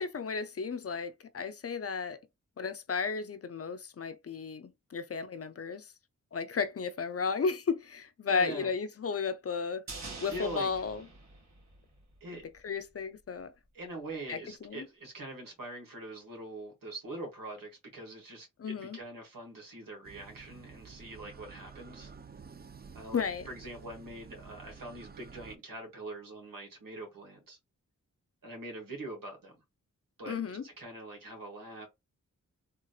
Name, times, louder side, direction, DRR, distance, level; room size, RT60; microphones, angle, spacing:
voice 1, 0.0-2.2 2.6-5.9 6.3-11.1 12.6-13.5 14.3-14.9 18.6-19.0 23.1-23.5 30.3-30.6, left 5 dB, 45° left, 0.5 m, -34 dB
voice 2, 8.3-8.7 10.3-10.7 12.2-12.5 13.7-22.1 22.9-27.6 28.4-29.6 30.2-31.9, right 1 dB, 85° right, 1.9 m, -43 dB
sound 1, 9.9-12.3 12.5-12.6, right 3 dB, 55° right, 1.8 m, -46 dB
sound 2, 20.0-25.6, right 6 dB, 30° right, 0.4 m, -51 dB
3.5 x 2.8 x 2.4 m
cardioid pair, 65°, 33 cm